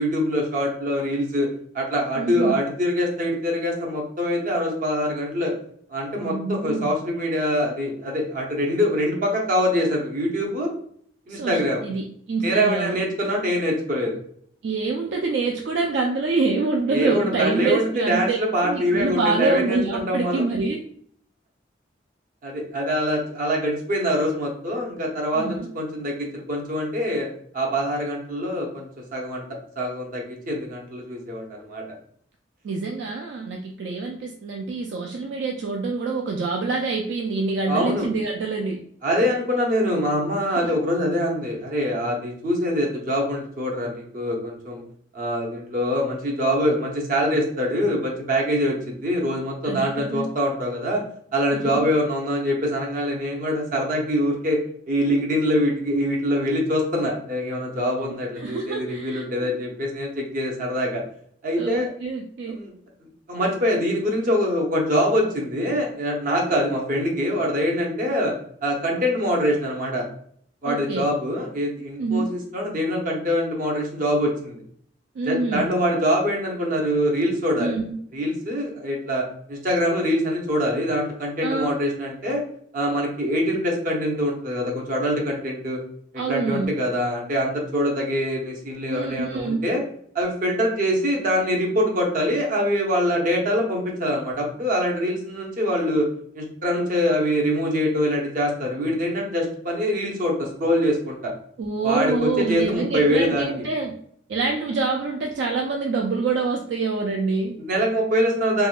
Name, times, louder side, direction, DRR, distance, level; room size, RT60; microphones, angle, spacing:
voice 1, 0.0-1.5 1.7-5.5 5.9-10.7 11.3-11.8 12.4-14.1 16.9-20.4 22.4-27.3 27.5-29.4 29.8-31.8 37.7-38.1 39.0-44.8 45.1-51.0 51.3-54.6 54.9-61.0 61.4-61.9 62.5-62.7 63.3-68.3 68.6-70.1 70.6-74.6 75.2-77.8 78.1-79.2 79.5-82.4 82.7-85.8 86.3-89.8 90.1-96.1 96.3-101.3 101.8-103.5 107.6-108.7, equal, 45° right, 0 dB, 0.8 m, -24 dB
voice 2, 2.2-2.6 6.1-6.9 11.3-13.0 14.6-18.4 18.6-20.8 25.3-25.7 32.6-38.8 40.6-40.7 49.6-50.3 51.5-51.9 58.4-59.5 61.6-62.6 66.5-66.6 70.6-71.1 72.0-72.3 75.2-75.8 77.6-78.0 81.4-81.8 86.2-86.8 88.9-89.7 101.6-104.0 104.3-107.6, right 4 dB, 70° right, 1 dB, 0.3 m, -26 dB
3.5 x 2.2 x 2.4 m, 0.62 s
head